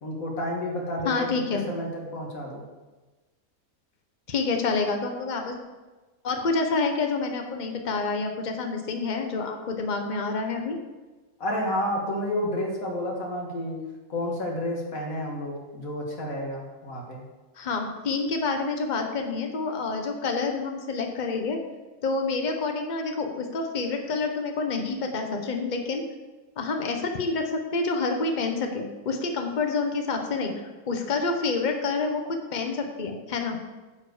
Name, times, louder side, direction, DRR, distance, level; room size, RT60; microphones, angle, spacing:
voice 1, 0.0-1.3 1.7-2.6 11.4-13.8 14.1-17.2, left 1 dB, 75° left, 0 dB, 2.1 m, -30 dB
voice 2, 1.0-1.7 4.3-5.5 6.2-10.8 17.6-21.6 22.0-26.0 26.6-30.5 30.9-33.6, left 4 dB, 35° left, 4 dB, 1.0 m, -28 dB
9.9 x 4.6 x 6.5 m, 1.2 s
omnidirectional pair, 1.5 m